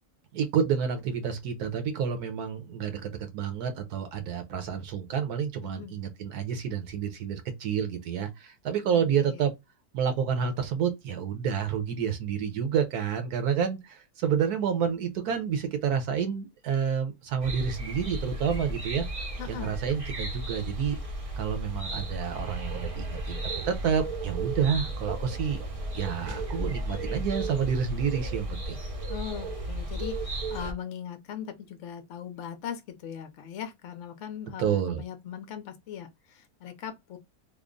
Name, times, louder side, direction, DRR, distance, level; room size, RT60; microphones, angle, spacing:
voice 1, 0.3-9.5 9.9-19.0 19.5-21.0 21.4-25.6 25.9-28.8 34.6-35.0, right 7 dB, 80° right, 1.3 m, -29 dB
voice 2, 5.6-5.9 8.9-9.5 19.4-19.7 29.1-37.2, left 9 dB, 65° left, 0.8 m, -40 dB
sound 1, 17.4-30.7, right 2 dB, 35° right, 0.6 m, -34 dB
3.5 x 2.1 x 3.7 m
omnidirectional pair, 1.6 m